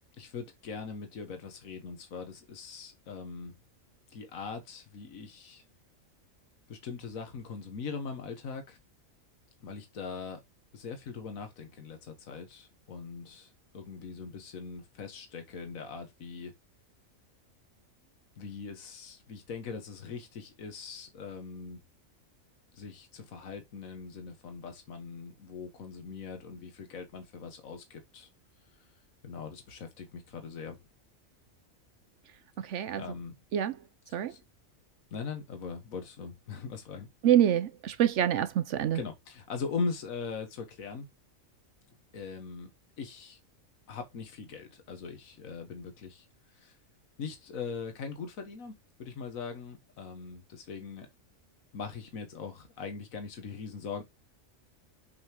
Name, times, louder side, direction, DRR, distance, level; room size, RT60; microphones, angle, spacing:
voice 1, 0.2-3.5 4.1-5.6 6.7-8.8 9.6-10.4 10.7-16.5 18.4-21.8 22.7-28.3 28.7-28.8 29.2-30.8 32.9-33.4 34.3-34.4 35.1-37.1 38.9-41.1 42.1-42.7 43.0-43.4 43.9-46.2 46.5-46.7 47.2-48.7 49.0-51.1 51.7-54.0, left 5 dB, 80° left, 1.7 m, -41 dB
voice 2, 32.7-33.0 33.5-33.7 34.1-34.3 37.2-39.0, right 10 dB, 65° right, 0.9 m, -26 dB
7.0 x 5.4 x 2.9 m
omnidirectional pair, 1.4 m